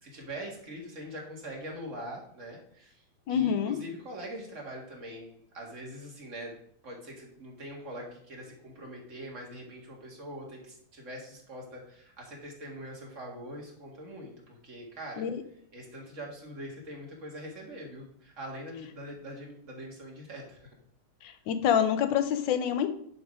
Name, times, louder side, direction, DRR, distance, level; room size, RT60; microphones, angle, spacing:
voice 1, 0.0-3.0 3.3-6.6 6.8-15.3 15.7-20.8, equal, 35° right, -1 dB, 2.1 m, -43 dB
voice 2, 3.3-3.8 15.2-15.4 21.2-22.9, left 8 dB, 70° left, 9 dB, 1.4 m, -27 dB
10.0 x 3.9 x 5.0 m, 0.66 s
omnidirectional pair, 2.3 m